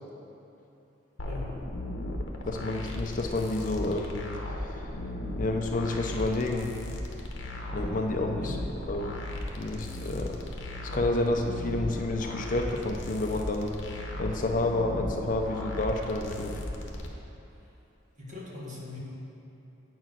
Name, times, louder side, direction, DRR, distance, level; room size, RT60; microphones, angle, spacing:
sound 1, 1.2-17.1, left 1 dB, 75° left, 0.9 m, -36 dB
voice 1, 1.2-1.6 8.4-8.6 18.2-19.0, left 3 dB, 40° right, -5 dB, 1.6 m, -40 dB
voice 2, 2.5-4.2 5.4-6.7 7.7-8.6 8.9-9.1 9.6-10.4 10.9-16.5, left 2 dB, 45° left, 2 dB, 0.5 m, -29 dB
8.6 x 4.5 x 6.1 m, 3.0 s
head